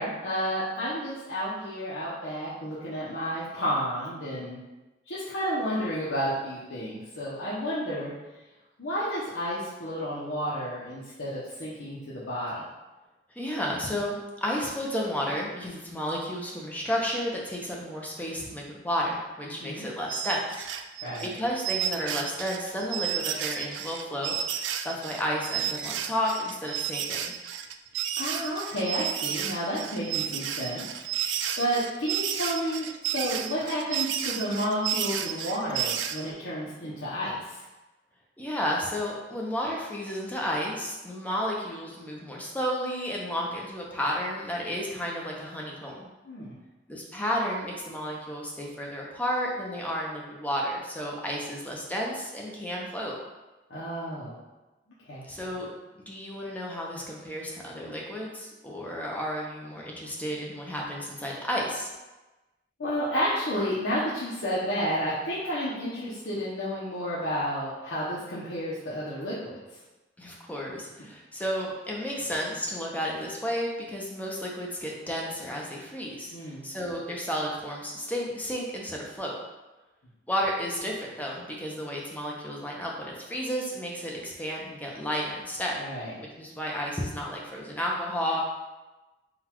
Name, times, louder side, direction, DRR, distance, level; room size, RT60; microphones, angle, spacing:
voice 1, 0.0-4.6 5.1-8.1 8.8-12.6 19.6-19.9 21.0-21.3 28.2-30.8 31.1-31.2 31.6-37.6 46.2-46.5 53.7-54.4 55.1-55.3 62.8-69.6 76.3-76.7 85.8-86.1, equal, 90° left, -9 dB, 0.8 m, -31 dB
voice 2, 13.3-20.7 21.2-27.3 38.4-46.1 46.9-53.2 55.2-55.7 56.1-61.9 70.2-79.4 80.3-85.8 86.2-88.4, equal, 10° left, -2 dB, 0.6 m, -32 dB
sound 1, 20.1-36.3, right 9 dB, 90° right, 0.3 m, -32 dB
3.9 x 2.4 x 4.4 m, 1.1 s
head